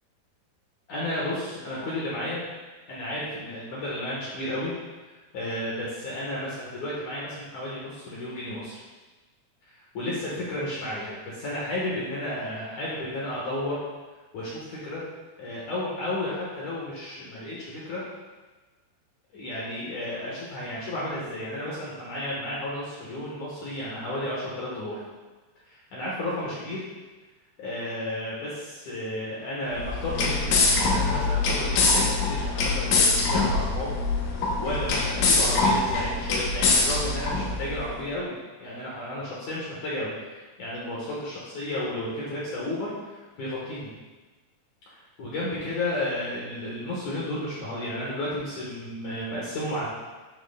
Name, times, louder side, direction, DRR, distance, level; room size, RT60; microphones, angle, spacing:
voice 1, 0.9-2.4 2.9-4.7 5.0-8.8 9.9-13.8 14.3-15.0 15.4-18.0 19.3-25.0 25.7-26.8 27.6-33.9 34.2-38.3 38.6-43.9 44.9-49.9, left 1 dB, 60° left, -6 dB, 2.1 m, -32 dB
sound 1, 29.7-37.9, left 3 dB, 80° left, 1.9 m, -24 dB
12.0 x 6.0 x 2.3 m, 1.3 s
omnidirectional pair, 5.1 m